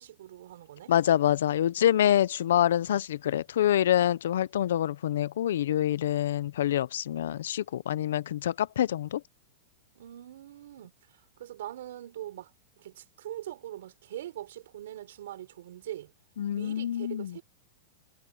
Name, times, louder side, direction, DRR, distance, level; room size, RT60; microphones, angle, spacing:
voice 1, 0.0-0.9 9.9-12.5 12.8-16.1 16.6-17.4, right 13 dB, 70° right, 4.6 m, -42 dB
voice 2, 0.9-9.2 16.4-17.4, left 11 dB, 80° left, 0.6 m, -26 dB
supercardioid pair, 170°, 0 cm